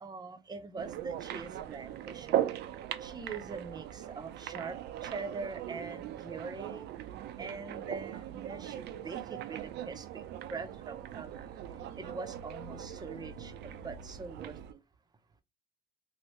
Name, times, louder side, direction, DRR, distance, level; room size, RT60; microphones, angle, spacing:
voice 1, 0.0-2.5 3.0-6.9 7.4-10.2 10.5-11.3 12.0-14.8, right 4 dB, 20° right, 0.7 m, -43 dB
sound 1, 0.8-14.7, right 11 dB, 60° right, 0.5 m, -39 dB
2.9 x 2.7 x 3.1 m
supercardioid pair, 100°, 20 cm